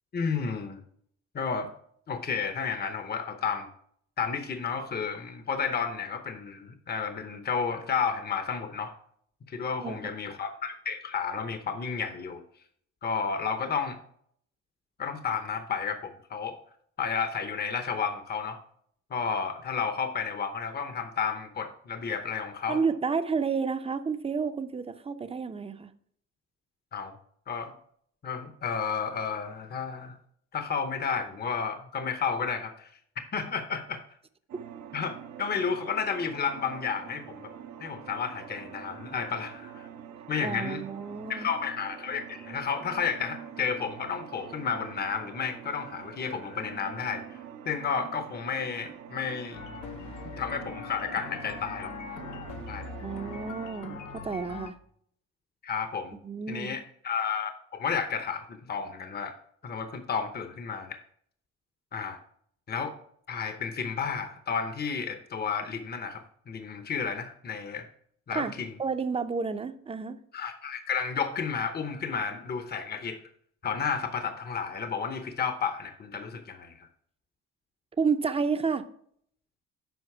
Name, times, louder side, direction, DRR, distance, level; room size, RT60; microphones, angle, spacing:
voice 1, 0.1-0.8 1.3-1.7 2.1-3.7 4.2-8.9 9.5-12.4 13.0-14.0 15.0-16.6 17.0-18.6 19.1-22.8 26.9-27.1 27.5-27.7 28.2-30.2 30.5-32.9 33.3-34.0 34.9-37.5 37.8-39.9 40.3-40.8 41.3-47.4 47.7-49.6 50.4-51.9 52.7-52.9 55.6-56.2 56.5-59.4 59.6-61.0 61.9-62.2 62.7-63.0 63.3-67.9 68.3-68.7 70.3-73.2 73.6-76.9, left 6 dB, 30° left, 8 dB, 0.8 m, -32 dB
voice 2, 9.8-10.1 22.7-25.9 40.4-41.5 53.0-54.8 56.2-56.8 68.3-68.5 68.8-70.2 78.0-78.9, right 5 dB, 20° right, 10 dB, 0.6 m, -30 dB
sound 1, 34.5-53.7, right 9 dB, 70° right, 0.8 m, -45 dB
sound 2, 49.5-54.7, left 5 dB, 75° left, 0.9 m, -41 dB
8.0 x 5.1 x 4.7 m, 0.65 s
cardioid pair, 90°, 30 cm